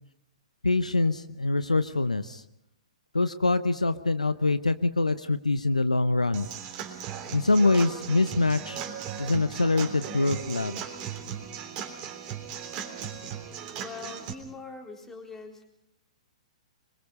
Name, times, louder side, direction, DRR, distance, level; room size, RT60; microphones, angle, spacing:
voice 1, 0.6-2.4 3.1-6.5 7.3-8.8 9.2-10.8, left 2 dB, 85° left, 12 dB, 0.9 m, -24 dB
Human voice / Acoustic guitar / Drum, 6.3-14.3, right 8 dB, 30° right, 3.5 m, -37 dB
voice 2, 13.8-15.6, left 4 dB, 10° left, 2 dB, 4.0 m, -42 dB
25.0 x 22.5 x 5.5 m, 0.82 s
figure-of-eight pair, 115°, 4 cm